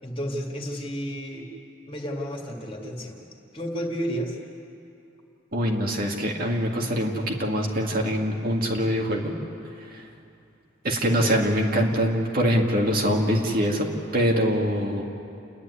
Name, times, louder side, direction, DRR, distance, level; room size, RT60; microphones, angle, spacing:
voice 1, 0.0-1.5 1.9-3.2 3.5-4.4 11.1-11.6, equal, 30° left, 0 dB, 2.3 m, -32 dB
voice 2, 5.5-9.3 9.9-10.0 10.8-13.9 14.1-15.0, equal, 50° right, 0 dB, 2.1 m, -24 dB
29.0 x 10.5 x 9.8 m, 2.6 s
head